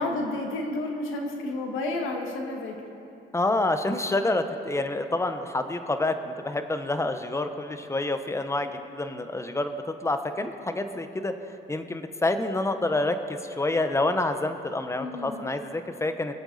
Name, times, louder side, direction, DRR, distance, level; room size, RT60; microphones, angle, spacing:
voice 1, 0.0-2.8 15.0-15.4, left 2 dB, 90° left, 2 dB, 1.8 m, -31 dB
voice 2, 3.3-11.3 11.7-16.3, left 2 dB, 15° left, 8 dB, 0.8 m, -28 dB
22.5 x 7.8 x 4.1 m, 2.8 s
cardioid pair, 90°, 20 cm